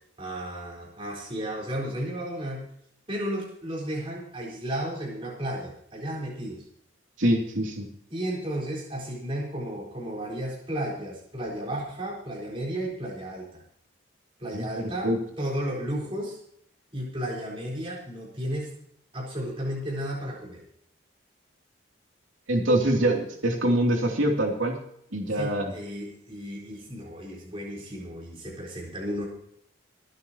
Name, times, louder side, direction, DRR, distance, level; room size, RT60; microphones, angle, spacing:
voice 1, 0.2-2.6 3.1-6.6 8.1-13.6 14.4-15.1 15.4-16.4 16.9-18.7 19.1-20.6 25.3-29.3, right 1 dB, 25° right, -3 dB, 4.2 m, -33 dB
voice 2, 7.2-7.9 14.5-15.2 22.5-24.7 25.1-25.7, right 1 dB, 80° right, 1 dB, 2.9 m, -24 dB
26.5 x 9.8 x 3.0 m, 0.68 s
head